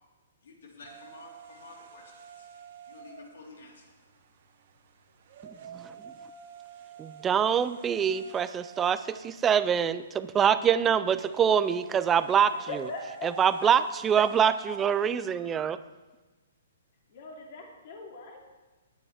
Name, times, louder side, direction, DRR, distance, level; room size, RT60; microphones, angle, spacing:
voice 1, 0.4-2.5 2.9-3.9, left 3 dB, 75° left, -2 dB, 3.8 m, -50 dB
sound 1, 0.8-15.3, right 7 dB, 40° right, 1.1 m, -50 dB
voice 2, 7.0-12.5 13.2-15.8, right 8 dB, 10° right, 14 dB, 0.3 m, -25 dB
voice 3, 12.5-13.7 14.0-14.5 17.1-18.4, left 3 dB, 40° left, 0 dB, 2.5 m, -41 dB
19.0 x 9.4 x 3.4 m, 1.2 s
hypercardioid pair, 175°, 0 cm